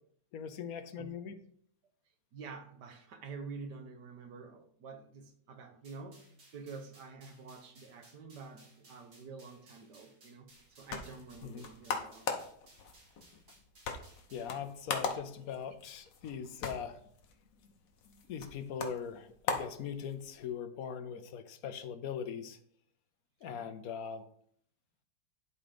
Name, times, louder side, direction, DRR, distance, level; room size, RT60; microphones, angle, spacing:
voice 1, 0.3-1.4 11.4-11.7 14.3-17.0 17.6-17.7 18.0-22.6 23.4-24.3, left 7 dB, 65° left, 9 dB, 1.0 m, -41 dB
voice 2, 2.3-12.3 21.1-21.2 23.4-23.7, right 4 dB, 70° right, 6 dB, 1.7 m, -48 dB
sound 1, 5.8-14.6, right 2 dB, 90° right, 3.3 m, -62 dB
sound 2, 10.5-20.5, left 5 dB, 85° left, 1.7 m, -41 dB
11.0 x 3.8 x 5.1 m, 0.65 s
omnidirectional pair, 1.9 m